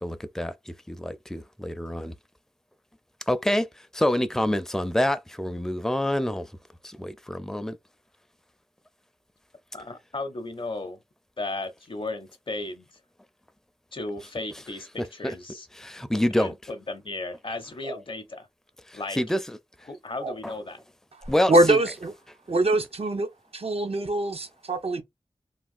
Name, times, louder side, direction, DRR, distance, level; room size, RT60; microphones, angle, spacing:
voice 1, 0.0-0.5 0.9-2.1 3.3-3.6 4.0-6.4 7.0-7.7 15.2-15.3 16.1-16.5 19.2-19.4 20.4-20.5 21.3-21.8, left 1 dB, 5° left, 0.4 m, -26 dB
voice 2, 9.7-11.0 11.4-12.9 13.9-15.7 16.4-18.5 18.9-19.2 19.9-20.8, left 2 dB, 55° left, 0.6 m, -35 dB
sound 1, 17.8-18.0 20.2-20.4 21.2-21.3, right 2 dB, 90° right, 1.1 m, -37 dB
voice 3, 21.5-22.1 22.5-23.3 23.5-25.0, right 2 dB, 70° right, 0.8 m, -23 dB
3.3 x 2.4 x 2.4 m
wide cardioid pair, 60°, 10 cm